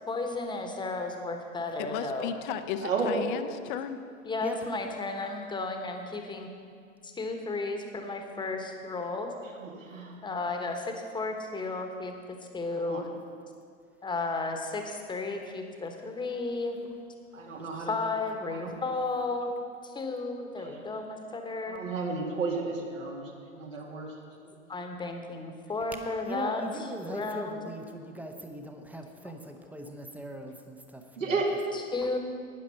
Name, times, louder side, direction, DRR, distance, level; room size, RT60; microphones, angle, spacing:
voice 1, 0.1-2.3 4.2-6.5 7.0-9.3 10.2-12.1 12.5-13.1 14.0-16.8 17.8-19.5 19.8-21.8 24.7-27.6 29.2-29.3 31.7-32.2, left 3 dB, 10° left, 4 dB, 1.3 m, -33 dB
voice 2, 1.8-4.0, left 9 dB, 40° left, 9 dB, 0.8 m, -34 dB
voice 3, 2.8-3.1 9.6-10.1 12.7-13.0 17.3-17.9 18.5-18.7 21.7-24.1 31.2-31.5, right 4 dB, 70° right, -1 dB, 2.4 m, -32 dB
voice 4, 17.5-17.8 26.3-31.3, right 1 dB, 5° right, 4 dB, 0.9 m, -40 dB
12.0 x 9.6 x 5.7 m, 2.2 s
figure-of-eight pair, 95°, 40 cm